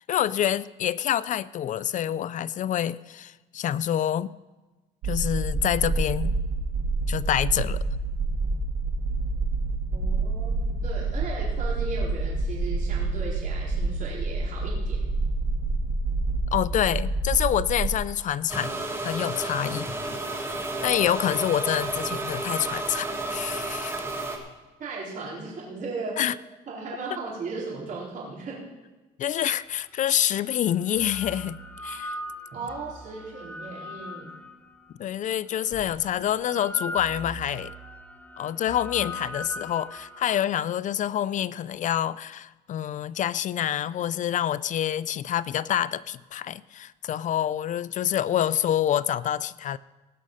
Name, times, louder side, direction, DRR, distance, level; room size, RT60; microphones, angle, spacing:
voice 1, 0.0-4.3 5.0-6.3 7.1-7.8 16.5-18.7 19.0-19.9 20.3-20.5 20.8-23.9 26.2-26.3 29.2-32.2 35.0-37.7 38.4-49.8, left 10 dB, 50° left, 18 dB, 0.4 m, -27 dB
sound 1, 5.0-18.0, right 3 dB, 75° right, 1.7 m, -27 dB
voice 2, 9.9-15.0 24.8-26.2 26.7-28.6 32.5-34.3, right 4 dB, 50° right, -5 dB, 4.4 m, -36 dB
sound 2, 18.5-24.4, right 2 dB, 15° right, 1.7 m, -31 dB
sound 3, 29.6-29.7 30.7-35.0 35.7-40.4, left 1 dB, 10° left, 0.9 m, -39 dB
18.5 x 6.3 x 5.6 m, 1.2 s
cardioid pair, 110°, 17 cm